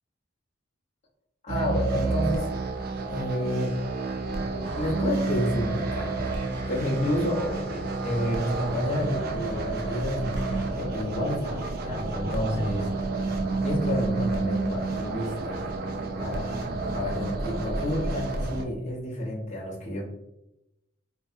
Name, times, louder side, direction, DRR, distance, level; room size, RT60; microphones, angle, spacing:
voice 1, 1.4-2.5 3.1-3.8 4.8-6.2 6.7-12.9 13.2-13.3 13.6-15.6 16.2-20.1, left 1 dB, 35° left, -5 dB, 0.8 m, -30 dB
sound 1, 1.5-18.6, right 3 dB, 50° right, 0.3 m, -30 dB
sound 2, 4.6-10.7, equal, 70° right, 0.7 m, -40 dB
2.6 x 2.2 x 2.5 m, 0.91 s
head